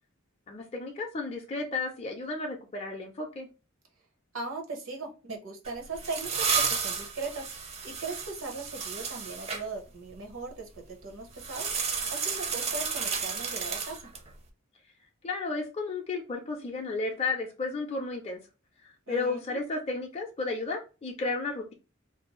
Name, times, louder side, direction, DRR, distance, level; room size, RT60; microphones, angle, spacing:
voice 1, 0.5-3.5 15.2-18.4 18.8-21.7, left 3 dB, 30° left, 0 dB, 0.5 m, -33 dB
voice 2, 4.3-14.1 19.1-19.6, right 3 dB, 75° right, 1 dB, 0.8 m, -39 dB
sound 1, 5.6-9.6 11.4-14.3, right 5 dB, 30° right, 0.5 m, -32 dB
2.6 x 2.3 x 3.0 m, 0.32 s
head